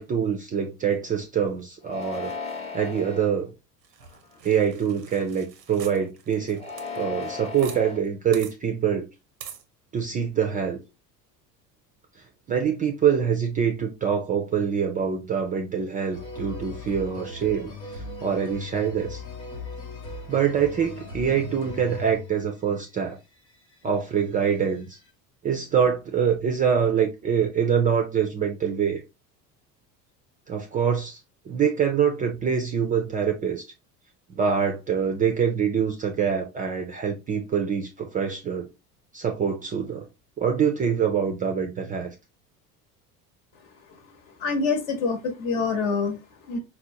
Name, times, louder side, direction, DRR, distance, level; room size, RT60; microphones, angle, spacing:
voice 1, 0.0-2.3 2.7-3.5 4.4-6.6 6.9-9.1 9.9-10.8 12.5-19.2 20.3-23.2 23.8-25.0 25.4-29.0 30.5-31.2 31.5-33.7 34.3-38.7 39.1-40.1 40.4-42.1, right 7 dB, 20° right, 0.3 m, -25 dB
sound 1, 1.8-3.3 4.0-4.5 6.5-8.0, left 4 dB, 15° left, 0.7 m, -36 dB
sound 2, 3.8-7.8 8.1-8.2 8.3-8.5 9.4-9.6, right 8 dB, 90° right, 0.6 m, -44 dB
sound 3, 16.1-22.6 23.5-24.8 25.0-25.1, left 2 dB, 85° left, 0.9 m, -38 dB
voice 2, 44.4-46.6, left 4 dB, 60° left, 1.0 m, -26 dB
4.2 x 2.1 x 2.7 m
hypercardioid pair, 70°, 48 cm